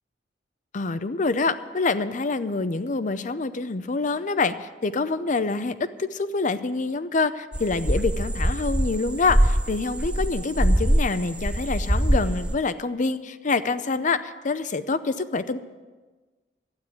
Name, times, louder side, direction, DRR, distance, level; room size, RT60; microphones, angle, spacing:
voice 1, 0.7-15.6, left 3 dB, 45° left, 13 dB, 0.6 m, -26 dB
sound 1, 7.5-11.1 11.4-12.6, right 1 dB, 5° right, 0.4 m, -22 dB
12.5 x 9.4 x 8.4 m, 1.3 s
head